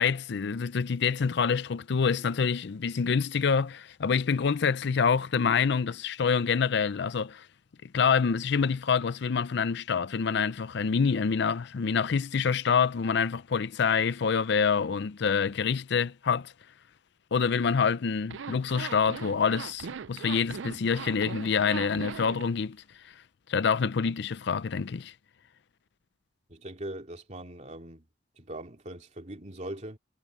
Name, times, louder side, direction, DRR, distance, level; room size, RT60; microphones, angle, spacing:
voice 1, 0.0-7.5 7.8-16.5 17.3-22.8 23.1-23.2 23.5-25.1, left 6 dB, 65° left, 0.5 m, -26 dB
Zipper (clothing), 18.2-22.5, right 6 dB, 75° right, 0.5 m, -40 dB
voice 2, 26.5-28.0 28.4-30.0, right 1 dB, 40° right, 2.8 m, -41 dB
head